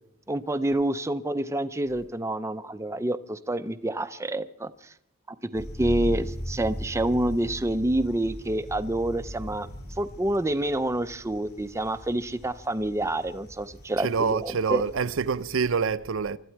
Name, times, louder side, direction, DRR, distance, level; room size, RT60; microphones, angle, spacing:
voice 1, 0.3-4.9 5.3-9.7 10.0-14.8, right 1 dB, 15° right, 0.5 m, -28 dB
sound 1, 5.5-15.7, equal, 50° left, 3.7 m, -38 dB
voice 2, 14.0-16.4, right 5 dB, 65° right, 0.6 m, -26 dB
25.0 x 12.5 x 4.6 m
head